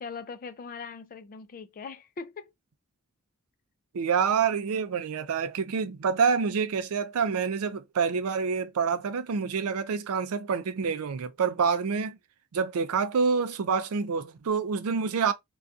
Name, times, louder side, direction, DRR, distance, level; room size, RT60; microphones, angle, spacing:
voice 1, 0.0-2.5, left 5 dB, 40° left, 0.3 m, -40 dB
voice 2, 3.9-12.2 12.5-15.3, right 5 dB, 80° right, 0.4 m, -27 dB
2.6 x 2.3 x 2.3 m
head